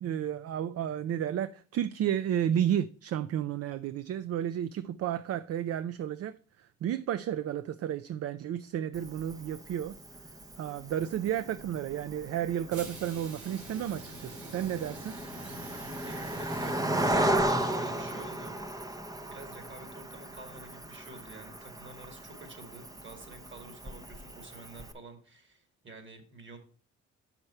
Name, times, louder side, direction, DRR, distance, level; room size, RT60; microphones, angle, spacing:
voice 1, 0.0-6.4 6.8-9.9 10.6-15.2, right 10 dB, 55° right, 0.4 m, -32 dB
Cricket, 8.9-24.9, right 1 dB, 10° right, 0.6 m, -36 dB
sound 1, 12.7-18.3, right 2 dB, 85° right, 2.4 m, -47 dB
voice 2, 16.0-18.6 19.3-26.6, right 3 dB, 40° right, 2.2 m, -50 dB
6.6 x 5.9 x 4.3 m
cardioid pair, 90°, 30 cm